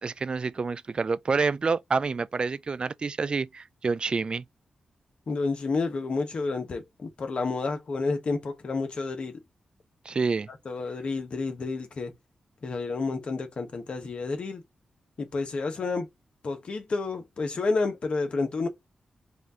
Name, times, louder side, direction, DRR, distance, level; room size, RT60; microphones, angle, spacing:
voice 1, 0.0-4.4 10.1-10.5, right 4 dB, 50° right, 0.4 m, -28 dB
voice 2, 5.3-9.4 10.6-12.1 12.6-14.6 15.2-16.1 16.4-18.7, left 3 dB, 60° left, 1.2 m, -30 dB
5.1 x 2.7 x 3.7 m
cardioid pair, 55°, 2 cm